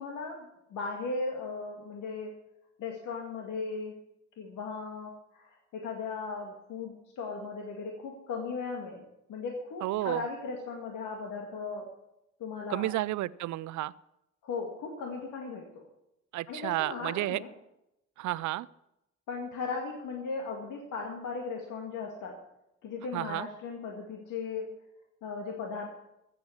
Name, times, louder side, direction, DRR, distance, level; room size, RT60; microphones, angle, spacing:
voice 1, 0.0-2.3 2.8-3.9 4.4-9.0 9.3-11.9 12.4-12.9 14.4-15.8 16.5-17.5 19.3-22.4 22.8-24.7 25.2-25.9, left 4 dB, 85° left, 0 dB, 2.1 m, -37 dB
voice 2, 9.8-10.2 12.7-13.9 16.3-17.4 18.2-18.7 23.1-23.5, right 16 dB, 70° right, 19 dB, 0.5 m, -31 dB
15.0 x 7.9 x 7.3 m, 0.87 s
cardioid pair, 90°, 30 cm